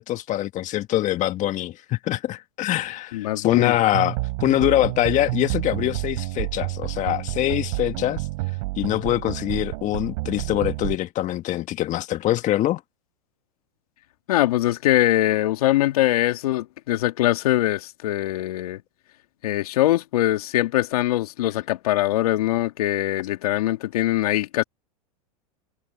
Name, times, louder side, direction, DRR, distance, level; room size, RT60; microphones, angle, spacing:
voice 1, 0.0-8.3 8.8-12.8, left 14 dB, 40° left, 1.6 m, -24 dB
voice 2, 3.1-3.7 14.3-18.8 19.4-24.6, left 15 dB, 75° left, 2.1 m, -22 dB
sound 1, 3.9-11.0, right 23 dB, 65° right, 3.9 m, -29 dB
hypercardioid pair, 105°, 19 cm